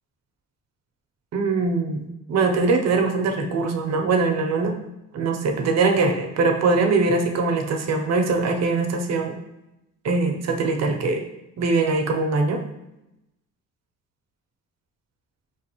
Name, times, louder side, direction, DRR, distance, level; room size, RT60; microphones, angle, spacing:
voice 1, 1.3-4.8 5.1-9.4 10.0-11.2 11.6-12.6, right 3 dB, 60° right, 3 dB, 0.7 m, -22 dB
4.7 x 3.1 x 3.0 m, 0.90 s
cardioid pair, 90°, 30 cm